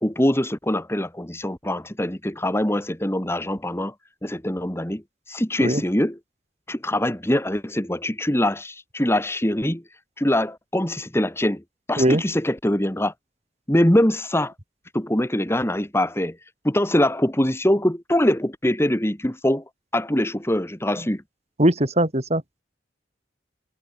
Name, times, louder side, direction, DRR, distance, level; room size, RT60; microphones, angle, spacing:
voice 1, 0.0-3.9 4.2-5.0 5.3-6.2 6.7-9.8 10.2-11.6 11.9-13.1 13.7-14.5 14.9-16.4 16.6-19.6 19.9-21.2, left 1 dB, 15° left, 2.3 m, -23 dB
voice 2, 21.6-22.6, right 1 dB, 35° right, 3.9 m, -20 dB
head